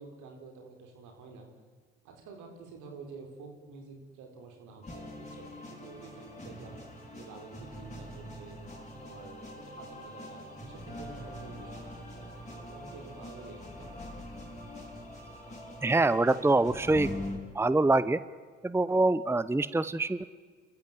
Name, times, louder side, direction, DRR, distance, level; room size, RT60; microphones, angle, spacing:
voice 1, 0.0-1.5 2.0-6.8 7.1-8.6 9.0-14.0, right 4 dB, 75° right, 3 dB, 4.4 m, -49 dB
sound 1, 4.8-17.4, left 1 dB, 20° left, 6.2 m, -43 dB
voice 2, 15.8-17.1 17.5-18.2 18.6-20.2, right 2 dB, 10° right, 16 dB, 0.8 m, -25 dB
29.0 x 14.5 x 8.1 m, 1.5 s
hypercardioid pair, 50°, 31 cm